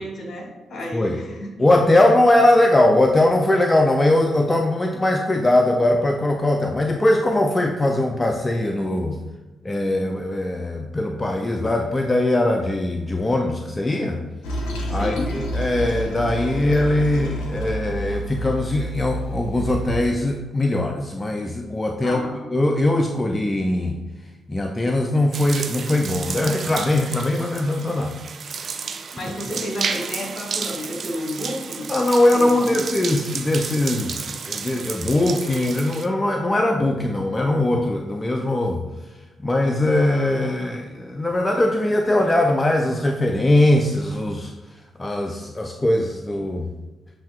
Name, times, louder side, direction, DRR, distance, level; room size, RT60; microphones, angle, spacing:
voice 1, 0.0-1.5 14.9-15.3 22.0-22.5 28.8-31.9 32.3-32.8, left 1 dB, 60° left, 0 dB, 1.3 m, -32 dB
voice 2, 1.6-9.2 9.6-14.2 14.9-22.2 22.5-24.0 24.5-28.2 31.9-38.8 39.4-44.5 45.0-46.7, left 1 dB, 30° left, 3 dB, 0.4 m, -21 dB
Toilet flush, 14.4-20.1, equal, 85° left, 0.6 m, -29 dB
sound 1, 25.3-36.1, right 5 dB, 60° right, 0.4 m, -32 dB
7.5 x 2.7 x 2.4 m, 1.1 s
hypercardioid pair, 45°, 0 cm